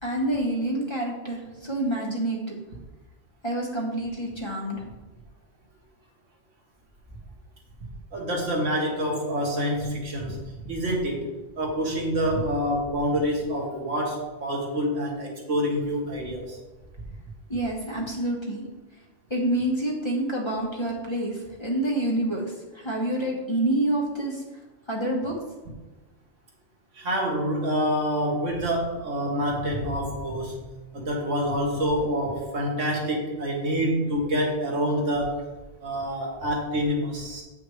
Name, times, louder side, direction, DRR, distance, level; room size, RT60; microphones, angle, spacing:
voice 1, 0.0-2.6 3.4-4.9 17.5-18.6 19.3-24.4 24.9-25.3, right 1 dB, 25° left, -2 dB, 1.2 m, -27 dB
voice 2, 8.1-11.3 11.6-16.6 26.9-30.7 30.9-35.4 35.8-37.4, equal, 80° right, -1 dB, 1.8 m, -27 dB
8.0 x 5.6 x 3.2 m, 1.2 s
omnidirectional pair, 1.3 m